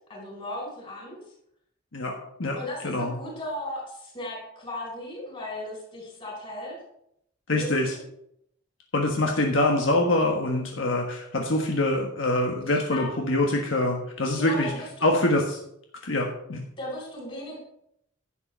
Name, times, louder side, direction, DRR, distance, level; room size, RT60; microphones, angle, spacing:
voice 1, 0.1-1.2 2.5-6.8 7.5-8.0 12.6-13.1 14.3-15.2 16.8-17.6, left 1 dB, 25° left, -2 dB, 4.5 m, -36 dB
voice 2, 2.8-3.1 7.5-7.9 8.9-14.7 15.0-15.6 16.0-16.6, left 1 dB, 70° left, 1 dB, 1.4 m, -24 dB
11.0 x 7.5 x 4.5 m, 0.75 s
head